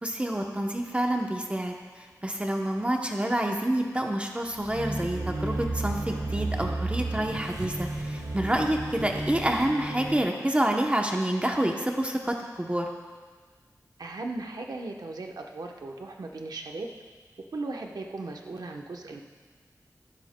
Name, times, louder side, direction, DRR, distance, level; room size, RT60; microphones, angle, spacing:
voice 1, 0.0-12.9, right 1 dB, 20° right, 2 dB, 0.8 m, -28 dB
sound 1, 4.6-10.2, right 2 dB, 60° right, 1.3 m, -32 dB
voice 2, 14.0-16.9 17.5-19.2, right 3 dB, 85° right, 2 dB, 0.9 m, -37 dB
15.5 x 12.5 x 2.2 m, 1.5 s
wide cardioid pair, 80°, 7 cm